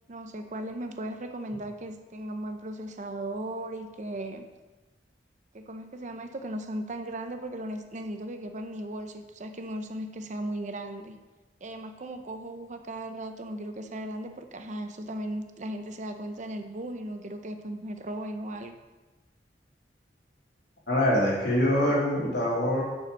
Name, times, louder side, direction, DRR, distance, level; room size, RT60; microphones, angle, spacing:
voice 1, 0.1-4.5 5.5-11.2 11.6-18.7, right 1 dB, 45° right, 7 dB, 0.6 m, -37 dB
voice 2, 20.9-22.8, left 1 dB, 70° left, -5 dB, 3.2 m, -24 dB
6.9 x 5.7 x 6.7 m, 1.2 s
head